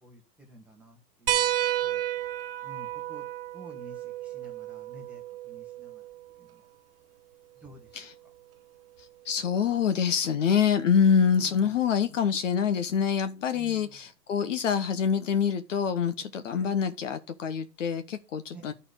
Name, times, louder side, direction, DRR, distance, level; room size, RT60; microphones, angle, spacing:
voice 1, 0.0-1.4 1.7-2.0 2.6-3.2 3.5-6.0 6.4-6.6 7.6-8.1 11.4-11.8 13.5-14.0 16.5-16.7 18.5-18.7, right 1 dB, ahead, 1.5 m, -51 dB
sound 1, 1.3-6.3 7.9-8.0 9.6-9.7, right 13 dB, 35° right, 0.8 m, -32 dB
voice 2, 9.2-18.7, left 7 dB, 50° left, 1.1 m, -26 dB
10.5 x 4.3 x 6.5 m
hypercardioid pair, 150°, 50 cm